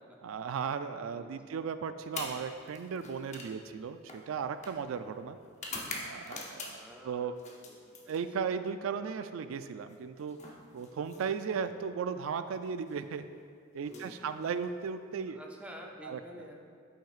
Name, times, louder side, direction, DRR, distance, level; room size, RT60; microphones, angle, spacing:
voice 1, 0.2-5.4 5.9-7.4 8.1-10.4 10.7-13.3 13.7-15.4 16.0-16.2, right 6 dB, 70° right, 11 dB, 0.3 m, -36 dB
voice 2, 1.1-1.6 6.7-7.3 7.7-7.8 8.0-8.2 13.8-14.4 15.3-16.8, equal, 5° right, 0 dB, 0.5 m, -50 dB
sound 1, 2.0-7.0 7.4-8.6 9.8-11.6 12.7-13.0 13.8-14.9, left 3 dB, 35° left, 0.7 m, -45 dB
8.6 x 5.8 x 2.4 m, 2.2 s
head